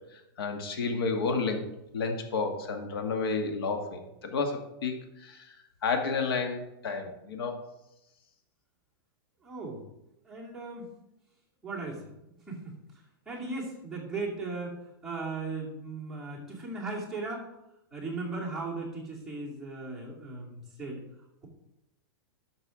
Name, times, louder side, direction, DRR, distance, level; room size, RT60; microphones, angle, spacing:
voice 1, 0.4-1.6 1.9-4.9 5.2-5.4 5.8-7.6, left 4 dB, 80° left, 5 dB, 1.6 m, -30 dB
voice 2, 9.4-9.8 10.2-10.9 11.6-12.0 12.5-12.7 13.3-17.5 17.9-21.0, right 3 dB, ahead, -6 dB, 2.2 m, -37 dB
11.5 x 6.4 x 3.7 m, 0.88 s
supercardioid pair, 170°, 12 cm